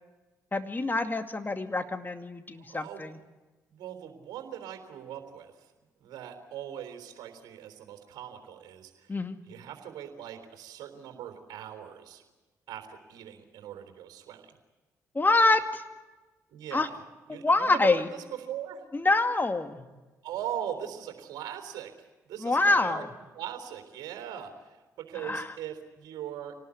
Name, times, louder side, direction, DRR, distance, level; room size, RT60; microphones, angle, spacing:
voice 1, 0.5-3.2 9.1-9.4 15.1-15.8 16.7-16.9 17.3-18.1 18.9-19.9 22.4-23.1 25.2-25.5, left 2 dB, 25° left, 7 dB, 2.2 m, -26 dB
voice 2, 2.6-3.1 3.7-5.5 6.0-9.1 9.5-12.2 12.7-14.6 16.5-17.0 17.3-18.8 20.2-21.9 22.3-23.0 23.3-26.5, right 10 dB, 60° right, 5 dB, 3.6 m, -40 dB
27.0 x 19.0 x 8.4 m, 1.2 s
hypercardioid pair, 45°, 8 cm